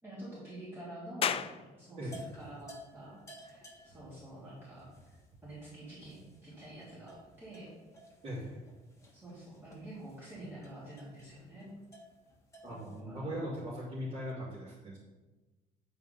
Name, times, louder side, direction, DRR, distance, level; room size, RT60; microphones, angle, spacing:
voice 1, 0.0-7.7 9.1-11.7 12.7-13.6, right 1 dB, 15° right, -10 dB, 3.2 m, -48 dB
sound 1, 1.2-14.3, left 8 dB, 35° left, 0.4 m, -45 dB
sound 2, 2.0-13.0, equal, 15° left, 1.6 m, -56 dB
voice 2, 8.2-8.6 12.6-15.0, equal, 35° right, -9 dB, 2.9 m, -39 dB
9.7 x 4.7 x 5.5 m, 1.2 s
cardioid pair, 135°, 16 cm